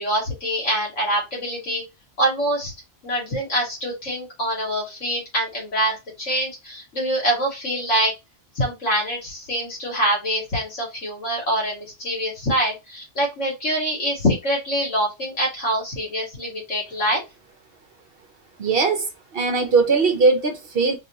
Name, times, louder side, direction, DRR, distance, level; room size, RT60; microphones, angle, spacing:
voice 1, 0.0-1.8 2.2-2.7 3.0-8.1 8.6-17.2, equal, 75° left, 2.2 m, -25 dB
voice 2, 18.6-19.1 19.3-21.0, right 4 dB, 55° right, 0.8 m, -19 dB
3.7 x 2.9 x 2.7 m
omnidirectional pair, 1.3 m